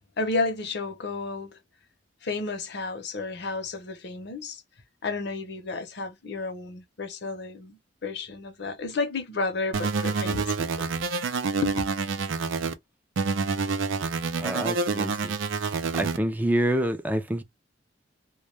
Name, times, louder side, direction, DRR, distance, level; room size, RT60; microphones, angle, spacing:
voice 1, 0.2-1.6 2.2-4.6 5.0-10.9 11.6-11.7, left 3 dB, 60° left, 0.7 m, -32 dB
sound 1, 9.7-12.7 13.2-16.2, right 4 dB, 80° right, 0.4 m, -27 dB
voice 2, 14.4-15.4 16.0-17.4, right 1 dB, 10° right, 0.3 m, -27 dB
2.2 x 2.2 x 3.0 m
head